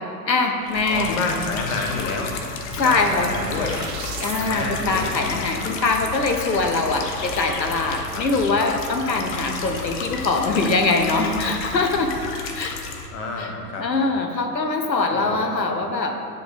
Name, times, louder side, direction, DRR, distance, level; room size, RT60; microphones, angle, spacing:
voice 1, 0.0-1.1 2.8-3.3 4.2-12.1 12.5-12.8 13.4-13.5 13.8-16.2, left 3 dB, 85° left, 4 dB, 0.9 m, -23 dB
sound 1, 0.7-13.1, left 4 dB, 25° left, 0.6 m, -32 dB
voice 2, 0.9-2.3 2.7-3.8 4.4-5.2 8.1-8.2 13.1-14.1 15.1-15.5, left 3 dB, 50° left, 1 dB, 1.5 m, -29 dB
sound 2, 2.2-4.5, right 7 dB, 20° right, 0.4 m, -38 dB
8.3 x 5.0 x 4.0 m, 2.4 s
figure-of-eight pair, 95°, 50 cm